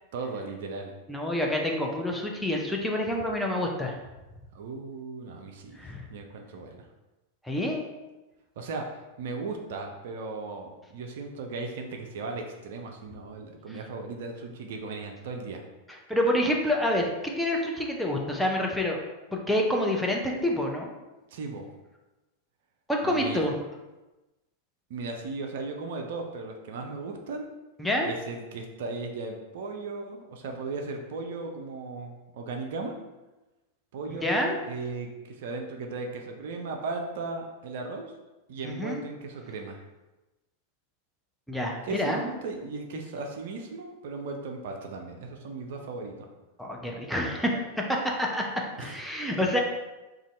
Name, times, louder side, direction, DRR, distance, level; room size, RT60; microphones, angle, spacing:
voice 1, 0.1-0.9 4.5-6.9 8.6-8.8 9.2-15.6 21.3-21.7 23.0-23.5 24.9-27.5 28.0-33.0 33.9-38.1 38.5-39.8 41.8-46.3 48.8-49.0, right 3 dB, 55° right, 2 dB, 0.4 m, -36 dB
voice 2, 1.1-4.0 5.8-6.0 7.4-7.8 16.1-19.0 19.3-20.9 22.9-23.5 27.8-28.1 34.2-34.6 38.6-39.0 41.5-42.3 46.6-47.6 48.2-48.4 48.8-49.6, left 1 dB, ahead, -1 dB, 0.5 m, -27 dB
2.6 x 2.4 x 4.2 m, 1.1 s
figure-of-eight pair, 90°, 0 cm